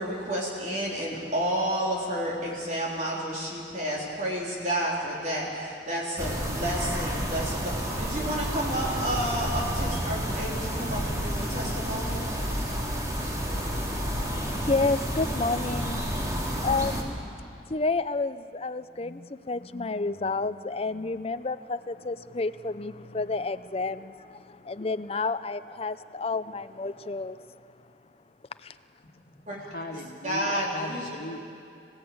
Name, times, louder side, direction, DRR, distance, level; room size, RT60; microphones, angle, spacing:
voice 1, 0.0-12.2 29.5-29.6 29.9-31.1, right 1 dB, 40° right, -4 dB, 3.5 m, -31 dB
sound 1, 6.2-17.0, equal, 20° right, 2.6 m, -30 dB
voice 2, 13.5-17.2 17.7-27.6 28.6-28.7, left 3 dB, 35° left, 13 dB, 0.6 m, -31 dB
voice 3, 29.0-31.4, left 1 dB, 55° left, 1 dB, 1.8 m, -39 dB
26.5 x 17.0 x 8.7 m, 2.5 s
head